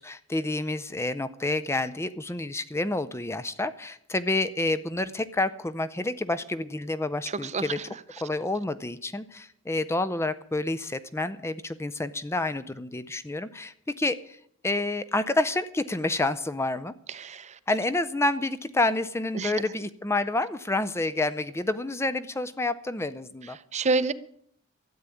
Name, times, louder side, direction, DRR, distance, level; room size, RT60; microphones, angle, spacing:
voice 1, 0.0-7.8 8.2-14.4 14.6-16.9 17.7-23.6, left 2 dB, 10° left, 14 dB, 0.5 m, -29 dB
voice 2, 7.4-7.7 17.1-17.5 19.3-19.5 23.7-24.1, right 3 dB, 30° right, 15 dB, 0.6 m, -27 dB
13.0 x 8.3 x 9.8 m, 0.67 s
head